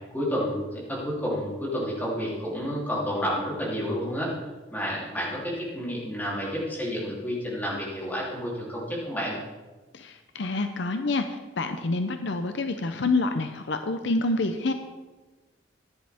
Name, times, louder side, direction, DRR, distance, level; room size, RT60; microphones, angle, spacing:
voice 1, 0.1-4.3 4.7-9.3, equal, 10° left, -6 dB, 3.2 m, -30 dB
voice 2, 9.9-11.2 11.6-14.7, left 2 dB, 70° left, 7 dB, 0.7 m, -27 dB
14.5 x 10.5 x 3.6 m, 1.2 s
head